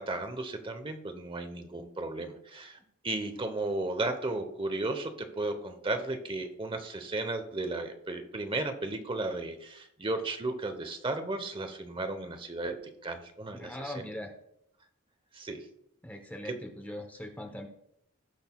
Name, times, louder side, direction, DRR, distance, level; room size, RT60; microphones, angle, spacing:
voice 1, 0.0-2.8 3.0-12.8 13.0-14.0 15.3-15.6, right 2 dB, 25° right, 8 dB, 1.0 m, -34 dB
voice 2, 13.5-14.3 16.0-17.7, left 1 dB, 10° left, 3 dB, 0.9 m, -40 dB
18.0 x 6.4 x 2.3 m, 0.76 s
head